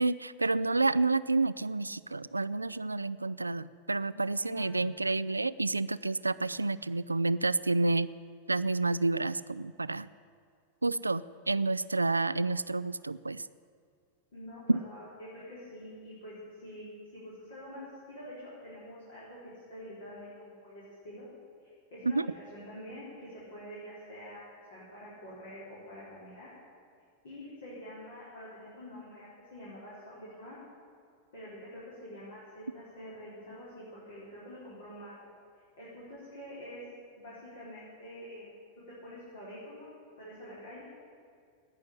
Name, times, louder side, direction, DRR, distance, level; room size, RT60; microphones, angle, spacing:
voice 1, 0.0-8.1 8.5-10.1 10.8-13.5 14.7-14.8 22.1-22.3, right 3 dB, 80° right, 17 dB, 0.3 m, -29 dB
voice 2, 4.1-4.8 14.3-21.3 21.6-26.5 27.2-30.6 31.3-35.3 35.8-36.8 37.1-38.5 38.9-39.9 40.2-40.9, equal, 60° left, -8 dB, 4.8 m, -47 dB
19.0 x 6.4 x 9.8 m, 2.3 s
figure-of-eight pair, 90°, 0 cm